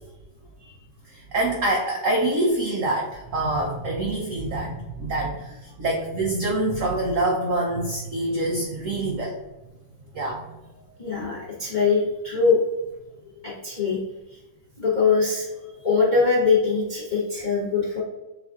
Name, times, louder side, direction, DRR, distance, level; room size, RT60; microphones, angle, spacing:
voice 1, 1.0-9.4 10.1-10.6, right 2 dB, 80° right, 0 dB, 0.7 m, -26 dB
voice 2, 11.0-12.6 13.4-14.0 14.8-18.0, left 4 dB, 60° left, -6 dB, 0.4 m, -22 dB
7.0 x 2.6 x 2.4 m, 1.0 s
omnidirectional pair, 2.1 m